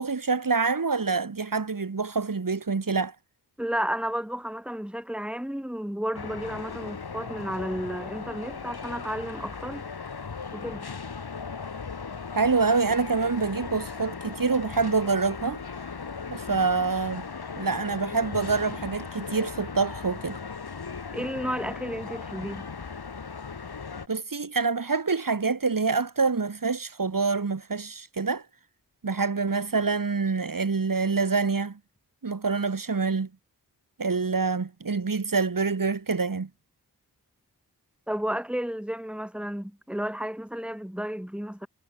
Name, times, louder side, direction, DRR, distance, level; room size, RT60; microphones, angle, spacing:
voice 1, 0.0-3.1 12.3-15.6 16.3-17.2 17.6-20.4 24.1-28.4 29.0-31.8 32.2-33.3 34.0-36.5, right 4 dB, 60° right, 4.0 m, -26 dB
voice 2, 3.6-9.8 10.5-10.9 21.1-22.7 38.1-41.7, equal, 5° right, 3.8 m, -32 dB
sound 1, 6.1-24.1, left 5 dB, 80° left, 6.1 m, -37 dB
wide cardioid pair, 60°, 37 cm